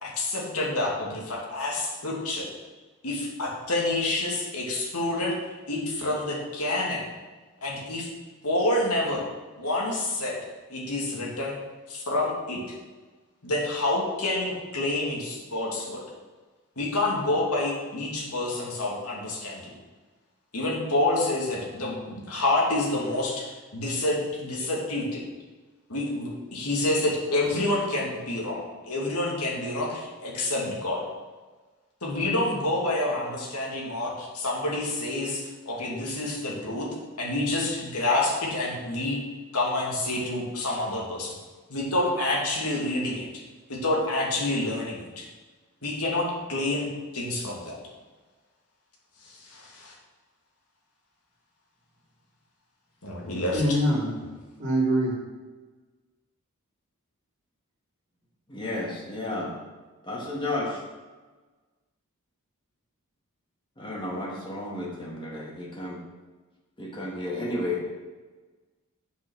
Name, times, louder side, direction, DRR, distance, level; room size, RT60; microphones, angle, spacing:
voice 1, 0.0-2.5 3.0-5.3 5.7-7.0 7.6-8.1 8.4-9.2 9.6-10.4 10.7-11.6 11.9-12.7 13.4-16.0 16.8-19.6 20.5-25.2 25.9-31.0 32.0-36.9 37.2-39.2 39.5-41.3 41.7-43.3 43.7-45.2 45.8-46.9 47.1-47.8 49.2-49.9 53.0-53.8, left 2 dB, 85° left, -2 dB, 2.4 m, -28 dB
voice 2, 53.5-54.1 54.6-55.1, equal, 40° right, -7 dB, 2.6 m, -23 dB
voice 3, 58.5-59.5 60.0-60.8 63.8-66.0 66.8-67.8, left 2 dB, 20° left, -3 dB, 1.9 m, -32 dB
8.1 x 5.9 x 6.2 m, 1.3 s
head